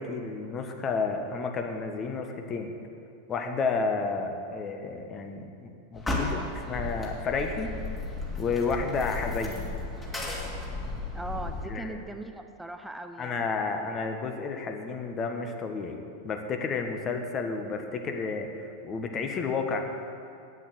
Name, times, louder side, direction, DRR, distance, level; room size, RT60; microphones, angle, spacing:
voice 1, 0.0-2.7 3.3-7.7 8.4-9.7 11.7-12.0 13.2-19.8, left 4 dB, 30° left, 4 dB, 1.4 m, -31 dB
sound 1, 5.9-11.7, left 2 dB, 15° left, 2.7 m, -34 dB
voice 2, 11.1-13.5, right 2 dB, 5° right, 7 dB, 0.7 m, -39 dB
9.3 x 8.2 x 8.1 m, 2.5 s
hypercardioid pair, 95°, 0 cm